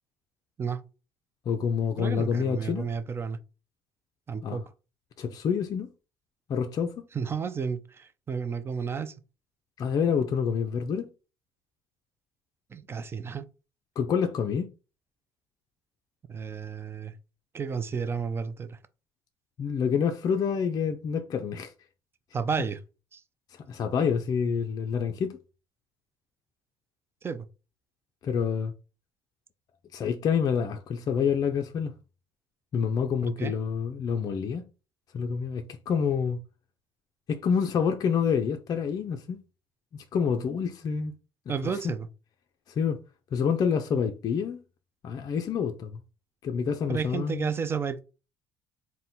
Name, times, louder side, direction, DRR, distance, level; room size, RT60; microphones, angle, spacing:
voice 1, 1.5-2.9 4.4-4.6 5.2-5.9 6.5-7.1 9.8-11.1 14.0-14.7 19.6-21.7 23.7-25.4 28.2-28.7 29.9-31.9 32.7-34.7 35.1-36.4 37.3-39.4 39.9-41.1 41.6-41.7 42.7-43.0 43.3-44.6 45.0-46.0 46.4-47.5, left 6 dB, 40° left, 0.5 m, -27 dB
voice 2, 2.0-3.4 4.3-4.6 7.1-9.1 12.7-13.5 16.3-17.1 17.5-18.8 22.3-22.8 23.1-23.2 27.2-27.5 33.4-33.5 41.5-42.1 46.9-48.0, right 6 dB, 25° right, 0.4 m, -32 dB
3.7 x 2.2 x 4.2 m
cardioid pair, 125°, 10 cm